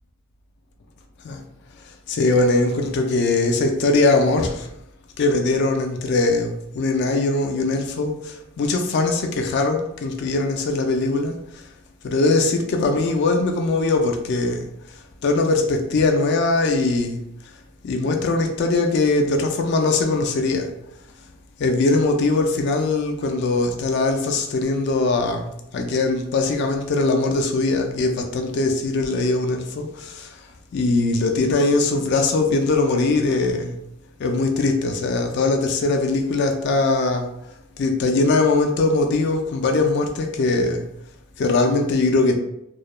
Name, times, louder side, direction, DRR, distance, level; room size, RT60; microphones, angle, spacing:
voice 1, 2.1-4.7 5.2-11.3 12.0-14.7 15.2-17.2 17.8-20.7 21.6-30.4 30.7-33.8 34.2-37.3 37.8-40.8 41.4-42.4, left 3 dB, 55° left, 4 dB, 0.3 m, -21 dB
2.3 x 2.1 x 2.9 m, 0.80 s
head